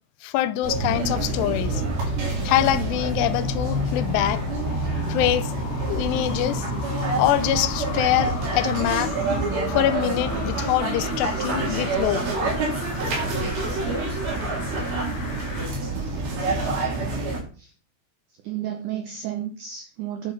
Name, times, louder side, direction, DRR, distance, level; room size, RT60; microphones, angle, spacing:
voice 1, 0.2-1.8 2.2-4.4 5.1-5.5 5.9-6.7 7.2-9.1 9.7-12.2, left 14 dB, 85° left, 2.7 m, -24 dB
sound 1, 0.6-17.4, right 2 dB, 60° right, 5.0 m, -27 dB
sound 2, 0.8-15.7 16.2-16.3, left 6 dB, 65° left, 2.9 m, -39 dB
voice 2, 15.9-17.1 17.6-17.7 18.3-20.3, right 11 dB, 90° right, 1.8 m, -34 dB
9.5 x 7.3 x 5.7 m
omnidirectional pair, 4.9 m